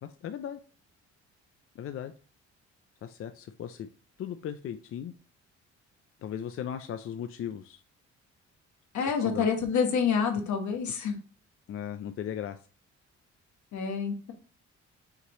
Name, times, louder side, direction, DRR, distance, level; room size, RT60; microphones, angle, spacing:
voice 1, 0.0-0.6 1.8-2.1 3.0-3.9 4.2-5.1 6.2-7.8 9.2-9.5 11.7-12.6, left 9 dB, 50° left, 8 dB, 0.4 m, -37 dB
voice 2, 8.9-11.2 13.7-14.3, left 6 dB, 70° left, 4 dB, 1.2 m, -27 dB
5.7 x 3.0 x 2.9 m, 0.37 s
cardioid pair, 90°, 30 cm